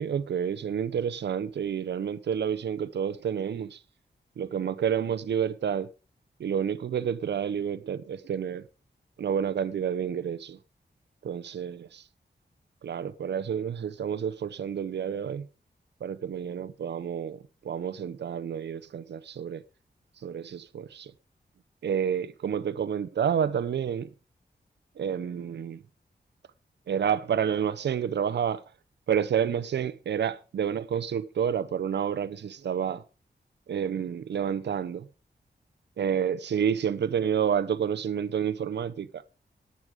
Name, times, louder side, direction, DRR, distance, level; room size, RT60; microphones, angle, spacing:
voice 1, 0.0-3.8 4.4-5.9 6.4-8.7 9.2-10.6 11.2-12.1 12.8-15.5 16.0-19.6 20.2-21.1 21.8-24.1 25.0-25.8 26.9-28.6 29.1-33.0 33.7-35.1 36.0-39.2, right 8 dB, 90° right, 0.6 m, -29 dB
11.0 x 9.6 x 4.9 m
wide cardioid pair, 155°, 18 cm